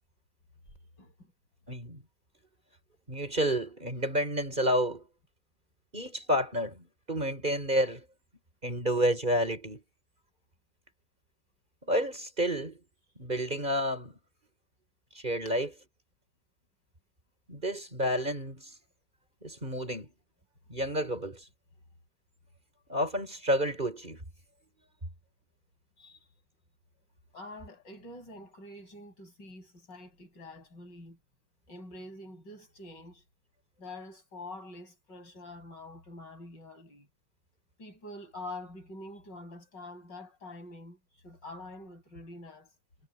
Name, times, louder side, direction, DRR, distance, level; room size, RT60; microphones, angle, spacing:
voice 1, 1.0-1.3 26.0-26.2 27.3-31.2 31.7-33.2 33.8-37.1 37.8-41.0 41.2-42.7, left 2 dB, 75° left, 7.5 m, -46 dB
voice 2, 1.7-2.0 3.1-5.0 5.9-8.0 8.6-9.8 11.8-12.8 13.2-14.2 15.1-15.7 17.5-18.7 19.4-20.1 20.7-21.4 22.9-24.2, equal, 25° right, 4.7 m, -30 dB
omnidirectional pair, 2.0 m